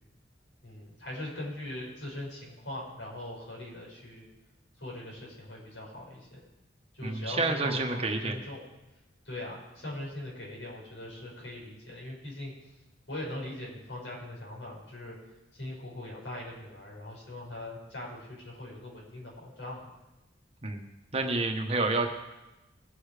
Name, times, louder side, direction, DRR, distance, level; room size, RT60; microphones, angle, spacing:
voice 1, 0.6-4.2 4.8-6.4 6.9-8.6 9.3-12.5 13.1-15.2 15.5-19.9, left 1 dB, 75° left, -3 dB, 5.5 m, -41 dB
voice 2, 7.0-8.3 20.6-20.8 21.1-22.1, right 2 dB, 30° right, 3 dB, 1.2 m, -29 dB
20.5 x 7.1 x 5.0 m, 1.0 s
head